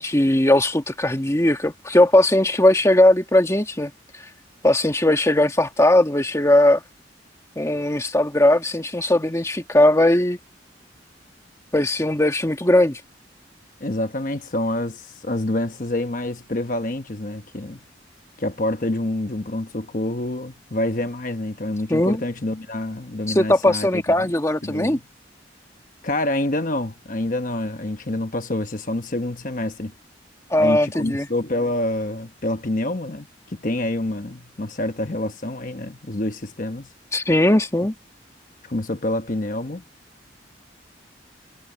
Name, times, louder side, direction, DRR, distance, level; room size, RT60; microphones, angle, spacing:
voice 1, 0.0-3.9 4.6-6.8 7.6-10.4 11.7-13.0 21.9-22.2 23.3-25.0 30.5-31.3 37.1-37.9, left 1 dB, 15° left, 1.4 m, -18 dB
voice 2, 13.8-17.8 18.4-24.3 24.6-25.0 26.0-29.9 30.6-36.9 38.6-39.8, left 1 dB, 45° left, 1.1 m, -27 dB
head